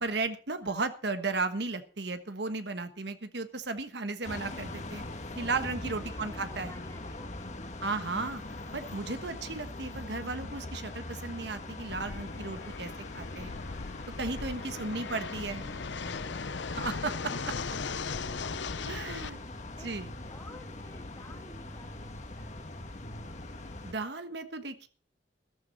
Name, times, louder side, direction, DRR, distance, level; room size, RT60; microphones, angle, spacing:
voice 1, 0.0-5.0 5.4-6.7 7.8-8.4 8.7-13.5 14.2-15.6 16.7-17.5 18.9-19.4 19.8-20.1 23.8-24.9, right 3 dB, 65° right, 9 dB, 1.3 m, -35 dB
sound 1, 4.2-23.9, left 2 dB, 40° left, 1.6 m, -42 dB
voice 2, 5.7-8.1 14.6-15.1 15.4-16.5 18.3-18.6 19.5-19.9 20.2-22.9, left 1 dB, 15° left, 4 dB, 2.7 m, -54 dB
Fixed-wing aircraft airplane, 11.9-19.3, left 5 dB, 75° left, 0.7 m, -38 dB
14.5 x 13.0 x 4.1 m, 0.37 s
head